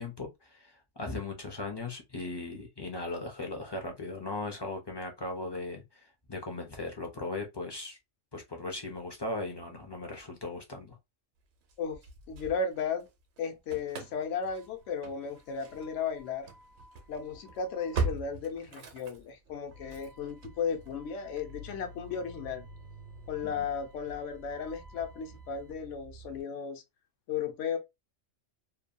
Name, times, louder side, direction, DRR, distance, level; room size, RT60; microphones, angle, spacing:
voice 1, 0.0-8.0 8.3-11.0 23.4-23.7, left 2 dB, 35° left, 0.4 m, -38 dB
Engine starting / Slam, 11.7-13.1 13.4-26.4, right 3 dB, 65° right, 0.8 m, -42 dB
voice 2, 12.3-13.1 13.4-16.5 17.1-22.7 23.3-26.8 27.3-27.8, left 6 dB, 80° left, 1.0 m, -35 dB
2.7 x 2.2 x 2.4 m
omnidirectional pair, 1.2 m